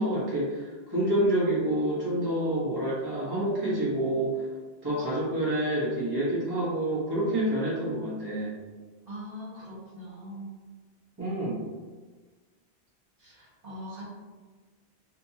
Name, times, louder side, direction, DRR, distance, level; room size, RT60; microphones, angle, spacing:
voice 1, 0.0-4.5 4.8-8.5 11.2-11.6, right 1 dB, 25° right, -9 dB, 1.0 m, -28 dB
voice 2, 9.1-10.5 13.2-14.0, equal, 60° right, -8 dB, 1.4 m, -41 dB
3.4 x 2.8 x 2.8 m, 1.4 s
omnidirectional pair, 1.1 m